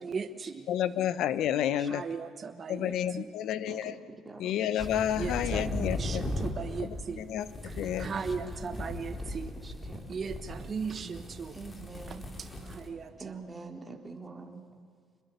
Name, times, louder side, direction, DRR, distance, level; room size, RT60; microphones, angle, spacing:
voice 1, 0.0-0.7 1.9-3.3 5.1-7.4 7.6-9.5 10.1-11.6 12.1-13.4, right 5 dB, 35° right, 8 dB, 1.3 m, -38 dB
voice 2, 0.7-2.0 2.7-4.0 4.4-6.2 6.8-7.5 7.8-8.1, left 10 dB, 70° left, 14 dB, 1.0 m, -30 dB
voice 3, 3.7-4.9 5.2-5.3 7.8-10.0 11.5-12.3 13.2-14.6, right 3 dB, 15° right, 2 dB, 3.0 m, -46 dB
sound 1, 4.8-12.9, left 1 dB, 20° left, 3.4 m, -38 dB
26.5 x 21.5 x 6.8 m, 2.2 s
cardioid pair, 110°, 0 cm